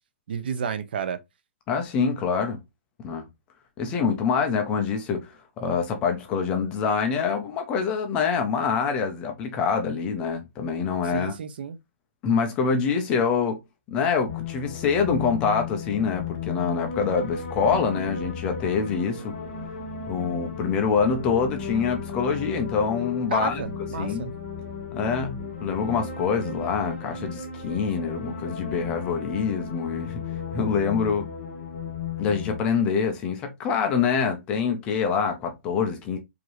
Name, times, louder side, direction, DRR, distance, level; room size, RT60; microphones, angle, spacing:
voice 1, 0.3-1.2 11.0-11.8 23.3-24.3, right 7 dB, 45° right, 0.5 m, -31 dB
voice 2, 1.7-2.6 3.0-3.3 3.8-11.3 12.2-13.6 13.9-19.4 20.1-23.6 24.0-24.3 24.9-30.2 30.5-31.3 32.2-36.2, left 6 dB, 10° left, 0.4 m, -25 dB
sound 1, 14.3-32.6, left 6 dB, 30° left, 1.7 m, -35 dB
4.8 x 2.6 x 2.9 m
hypercardioid pair, 175°, 7 cm